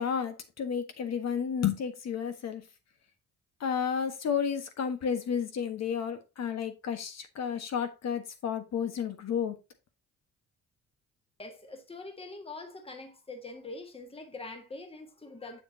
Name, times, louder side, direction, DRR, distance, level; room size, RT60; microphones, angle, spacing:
voice 1, 0.0-2.6 3.6-9.6, left 7 dB, 60° left, 1.5 m, -32 dB
voice 2, 11.4-15.6, left 3 dB, 20° left, 1.6 m, -44 dB
7.1 x 7.0 x 2.8 m
cardioid pair, 90°, 30 cm